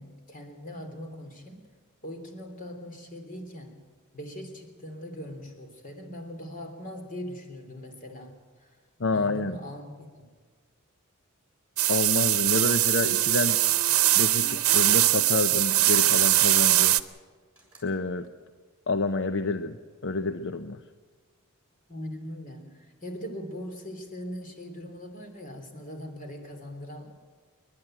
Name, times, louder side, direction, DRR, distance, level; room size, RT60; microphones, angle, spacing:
voice 1, 0.0-1.6 2.0-3.8 4.1-8.8 9.1-10.3 21.9-27.1, equal, 40° left, 5 dB, 3.5 m, -41 dB
voice 2, 9.0-9.6 11.9-13.6 14.1-17.0 17.8-18.3 18.9-19.8 20.0-20.8, left 3 dB, 60° left, 9 dB, 0.8 m, -28 dB
sound 1, 11.8-17.0, right 15 dB, 75° right, 0.8 m, -22 dB
sound 2, 13.5-13.9 15.7-16.2 17.5-17.9, right 1 dB, 5° right, 7.3 m, -53 dB
29.5 x 11.5 x 9.2 m, 1.5 s
head